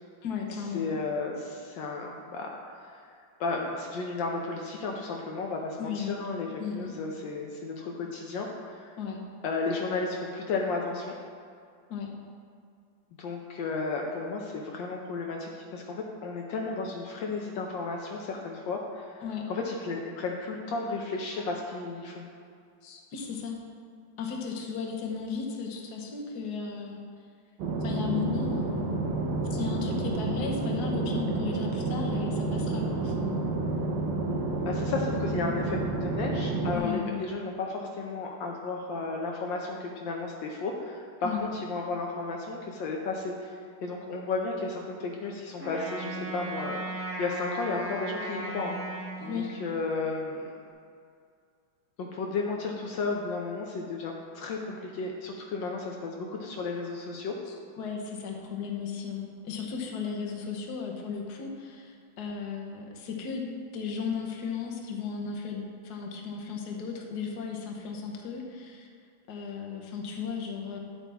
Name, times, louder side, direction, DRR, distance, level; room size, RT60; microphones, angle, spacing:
voice 1, 0.2-0.9 5.8-6.2 6.6-6.9 9.0-9.2 11.9-12.1 19.2-19.4 22.8-23.5 24.2-27.0 27.8-29.0 29.5-33.5 35.4-35.5 36.7-37.2 41.2-41.5 49.2-49.5 57.5-68.9 69.3-70.8, left 6 dB, 60° left, 0 dB, 1.5 m, -35 dB
voice 2, 0.7-3.1 3.4-8.9 9.4-11.1 13.2-19.1 19.5-22.2 34.6-48.8 49.2-50.5 52.0-57.3, left 3 dB, 75° left, 0 dB, 1.5 m, -33 dB
sound 1, 27.6-36.8, right 3 dB, 65° right, 1.5 m, -30 dB
Wind instrument woodwind instrument, 45.6-50.0, right 2 dB, 10° right, 0.6 m, -36 dB
8.9 x 8.3 x 3.5 m, 2.3 s
omnidirectional pair, 2.1 m